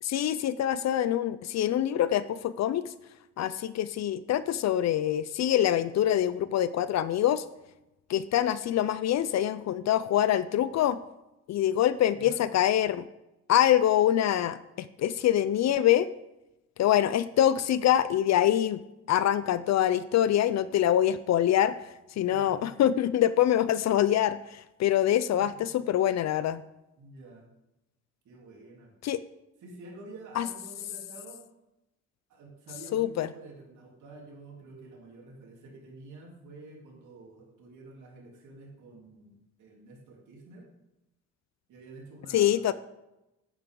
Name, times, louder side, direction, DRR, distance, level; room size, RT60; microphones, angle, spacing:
voice 1, 0.0-2.9 3.4-7.4 8.1-11.0 11.5-13.1 13.5-16.1 16.8-18.8 19.1-21.9 22.2-26.6 29.0-29.2 30.4-30.5 32.9-33.3 42.3-42.7, left 11 dB, 60° left, 15 dB, 0.5 m, -25 dB
voice 2, 22.3-22.7 25.4-25.5 27.0-27.4 28.2-28.9 29.6-31.4 32.3-40.6 41.7-42.7, right 2 dB, 75° right, -1 dB, 3.3 m, -49 dB
10.5 x 8.9 x 3.8 m, 0.93 s
cardioid pair, 90°, 30 cm